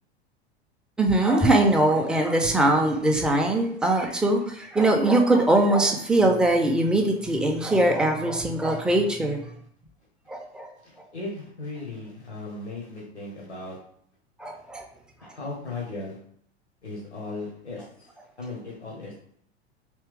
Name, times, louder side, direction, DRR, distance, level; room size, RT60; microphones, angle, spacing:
voice 1, 1.0-9.4 10.3-10.7 14.4-14.9, right 1 dB, 5° right, 2 dB, 0.3 m, -21 dB
voice 2, 10.8-13.8 15.2-16.2 16.8-18.1 18.4-19.1, left 3 dB, 85° left, -4 dB, 1.1 m, -37 dB
3.4 x 2.9 x 3.3 m, 0.69 s
figure-of-eight pair, 85°, 33 cm